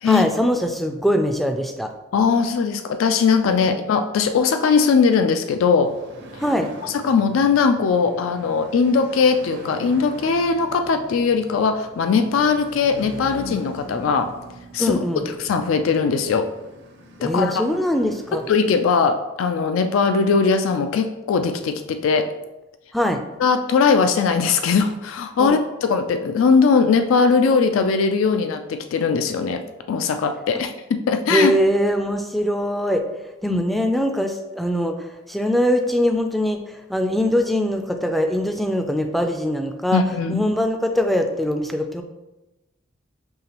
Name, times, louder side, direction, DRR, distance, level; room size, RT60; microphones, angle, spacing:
voice 1, 0.0-1.9 3.6-3.7 6.4-6.7 14.8-15.2 17.2-18.4 22.9-23.2 25.4-25.6 30.5-30.6 31.3-33.1 33.4-40.0 40.3-42.0, equal, ahead, 5 dB, 0.3 m, -22 dB
voice 2, 2.1-5.9 6.8-14.3 14.7-15.0 15.4-16.5 17.2-17.5 18.3-22.3 23.4-29.6 29.9-30.7 31.1-31.5 33.5-33.6 39.9-40.4, left 5 dB, 90° left, 8 dB, 0.3 m, -20 dB
sound 1, 5.8-19.3, equal, 65° right, 0.7 m, -42 dB
5.5 x 3.3 x 2.9 m, 1.0 s
head